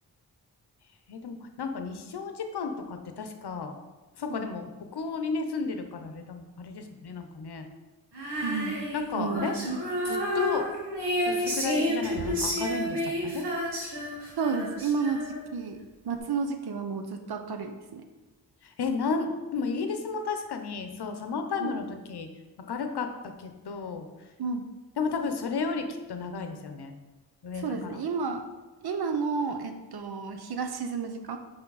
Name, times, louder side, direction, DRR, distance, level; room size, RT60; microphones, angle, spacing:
voice 1, 1.1-3.7 4.2-7.7 8.9-9.5 10.0-10.6 11.3-13.4 18.6-22.3 22.7-23.1 23.4-24.1 25.0-26.9 27.4-27.6, left 5 dB, 80° left, 6 dB, 0.8 m, -33 dB
Female singing, 8.1-15.6, equal, 85° right, 1.5 m, -30 dB
voice 2, 8.4-8.8 9.1-9.7 14.4-15.2 15.5-18.0 21.6-21.7 24.4-24.6 27.6-28.4 28.8-31.4, right 5 dB, 70° right, 7 dB, 0.7 m, -31 dB
5.9 x 5.2 x 4.0 m, 1.2 s
wide cardioid pair, 165°, 39 cm